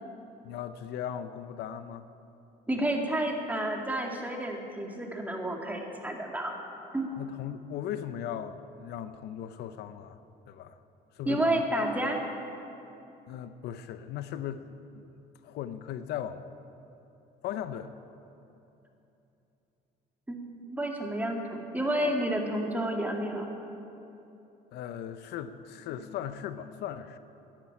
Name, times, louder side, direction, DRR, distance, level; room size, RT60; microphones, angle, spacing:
voice 1, 0.4-2.0 7.2-10.2 10.5-10.8 11.2-11.6 13.3-15.0 15.4-16.4 17.4-17.9 24.7-27.2, left 10 dB, 80° left, 11 dB, 0.7 m, -38 dB
voice 2, 2.7-6.5 6.9-7.1 11.3-12.2 20.3-23.5, right 1 dB, 10° right, 1 dB, 2.1 m, -30 dB
10.5 x 10.5 x 9.8 m, 2.9 s
cardioid pair, 110°, 17 cm